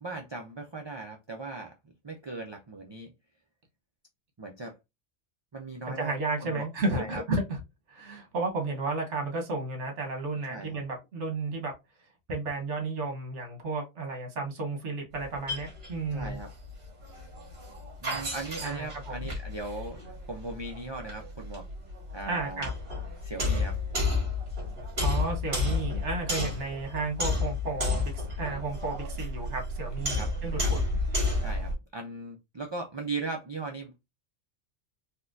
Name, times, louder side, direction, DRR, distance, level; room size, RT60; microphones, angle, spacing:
voice 1, 0.0-1.7 2.0-3.1 4.4-4.8 5.5-6.1 6.4-6.7 6.9-7.2 10.5-10.8 16.1-16.5 18.0-21.7 22.1-22.7 23.2-23.8 30.2-30.3 30.6-30.7 31.4-34.1, right 3 dB, 50° right, 0.3 m, -38 dB
voice 2, 5.8-7.6 7.9-11.7 12.3-16.4 18.6-19.2 22.3-22.7 25.0-30.9, right 3 dB, 80° right, 1.4 m, -33 dB
sound 1, 15.1-31.7, left 2 dB, 65° right, 1.8 m, -32 dB
4.3 x 2.2 x 2.5 m
omnidirectional pair, 1.2 m